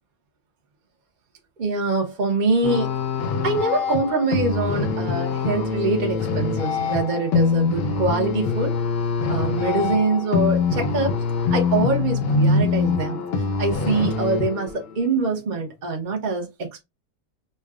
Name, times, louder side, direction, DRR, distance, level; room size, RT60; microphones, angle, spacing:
voice 1, 1.6-3.0 3.4-8.8 9.3-11.1 11.5-13.2 13.6-16.8, right 3 dB, 40° right, 0.8 m, -24 dB
sound 1, 2.6-15.0, left 4 dB, 60° left, 0.7 m, -24 dB
5.4 x 2.2 x 2.3 m
omnidirectional pair, 1.5 m